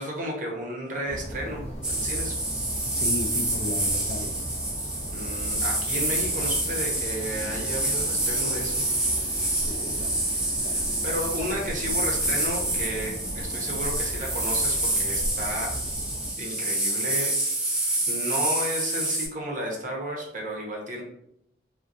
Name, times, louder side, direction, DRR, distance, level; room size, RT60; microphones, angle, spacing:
voice 1, 0.0-2.4 5.1-8.8 11.0-15.7 16.4-17.3 18.1-21.0, equal, 45° right, -1 dB, 0.7 m, -33 dB
sound 1, 1.1-16.3, equal, 35° left, 0.8 m, -37 dB
sound 2, 1.8-19.3, right 1 dB, 5° right, 0.5 m, -27 dB
voice 2, 2.9-4.4 9.5-10.2 10.6-11.1, left 2 dB, 50° left, 4 dB, 0.4 m, -35 dB
sound 3, 7.2-13.9, equal, 15° left, 1.5 m, -46 dB
3.7 x 2.2 x 2.5 m, 0.77 s
head